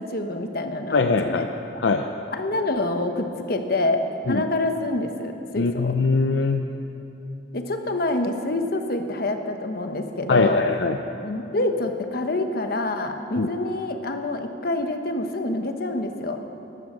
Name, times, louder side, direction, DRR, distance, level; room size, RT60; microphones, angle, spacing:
voice 1, 0.0-1.5 2.3-5.9 7.5-10.6 11.2-16.4, left 2 dB, 55° left, 6 dB, 1.1 m, -26 dB
voice 2, 0.9-1.5 1.8-2.1 4.3-4.4 5.6-6.6 10.3-11.0 13.4-13.5, left 4 dB, 75° left, 6 dB, 0.6 m, -21 dB
15.0 x 12.0 x 6.3 m, 2.9 s
head